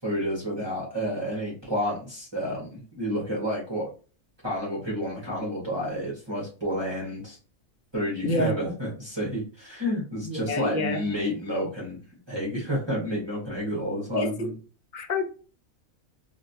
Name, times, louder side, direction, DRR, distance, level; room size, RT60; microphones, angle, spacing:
voice 1, 0.0-3.9 4.4-7.4 7.9-12.0 12.3-14.5, equal, 20° right, 1.4 m, -30 dB
voice 2, 10.2-11.0 14.1-14.5 14.9-15.2, left 2 dB, 50° left, 0.6 m, -27 dB
3.2 x 2.9 x 2.6 m
omnidirectional pair, 1.4 m